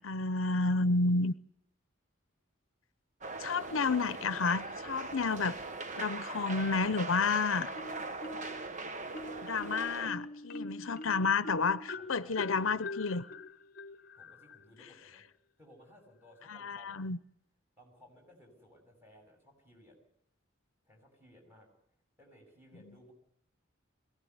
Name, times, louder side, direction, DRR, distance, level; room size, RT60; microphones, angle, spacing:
voice 1, 0.0-1.4 3.4-5.6 6.0-7.7 9.4-13.3 16.5-17.2, left 4 dB, 75° left, 15 dB, 0.8 m, -30 dB
sound 1, 3.2-10.1, right 3 dB, 35° right, 1.2 m, -41 dB
Marimba xylophone, 7.7-8.7 9.1-14.6, left 2 dB, 45° left, 1.0 m, -43 dB
voice 2, 9.7-10.3 12.0-12.7 14.1-15.3 15.6-17.1 17.8-20.0 20.8-21.7 22.2-23.1, equal, 10° right, 1 dB, 7.0 m, -59 dB
22.5 x 17.0 x 9.6 m, 0.77 s
head